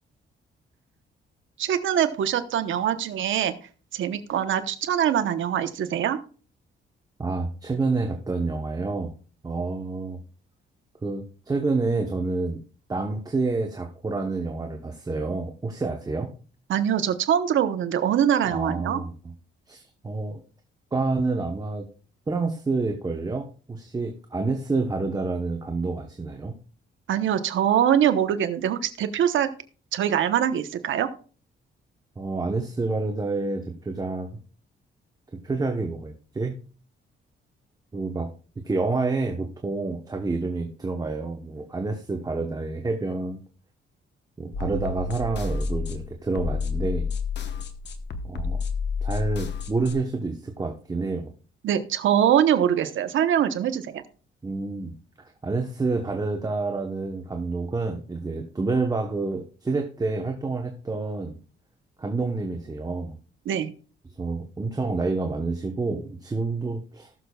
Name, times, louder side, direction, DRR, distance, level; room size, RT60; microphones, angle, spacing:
voice 1, 1.6-3.5 3.9-6.2 16.7-19.0 27.1-29.5 29.9-31.1 51.6-54.0 63.5-63.7, right 9 dB, 75° right, 10 dB, 1.0 m, -23 dB
voice 2, 7.2-9.1 9.4-10.2 11.0-12.6 12.9-16.3 18.5-19.1 19.7-20.4 20.9-21.9 22.3-26.5 32.2-34.4 35.4-36.6 37.9-38.3 38.6-43.4 44.4-47.1 48.2-48.6 49.0-51.3 54.4-54.9 55.4-61.4 62.0-63.2 64.2-67.1, right 3 dB, 20° right, 3 dB, 1.0 m, -28 dB
sound 1, 44.5-49.9, left 4 dB, 60° left, 1.0 m, -30 dB
19.0 x 6.7 x 2.3 m, 0.38 s
cardioid pair, 130°, 20 cm